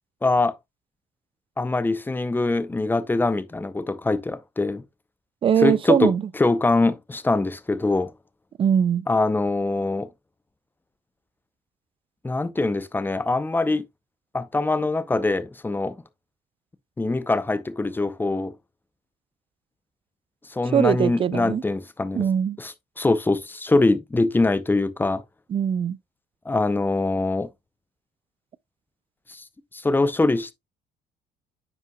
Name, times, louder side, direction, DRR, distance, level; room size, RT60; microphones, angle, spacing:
voice 1, 0.2-0.5 1.6-4.8 5.6-8.1 9.1-10.1 12.2-13.8 14.3-16.0 17.0-18.5 20.5-22.2 22.6-25.2 26.5-27.5 29.3-29.4 29.7-30.5, left 2 dB, 10° left, 0.6 m, -23 dB
voice 2, 5.4-6.2 8.6-9.1 20.7-21.6 22.1-22.6 25.5-26.0, right 8 dB, 30° right, 0.3 m, -21 dB
9.5 x 5.5 x 2.2 m
cardioid pair, 110°, 17 cm